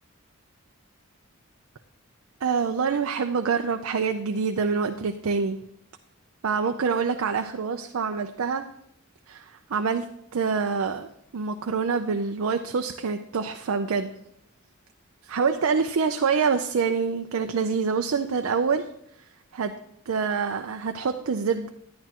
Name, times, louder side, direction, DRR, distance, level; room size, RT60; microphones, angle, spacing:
voice 1, 2.4-5.6 6.4-8.7 9.3-11.1 11.3-14.1 15.2-18.9 19.5-19.7 20.1-21.7, right 5 dB, 75° right, 6 dB, 0.5 m, -26 dB
11.0 x 10.5 x 2.9 m, 0.75 s
head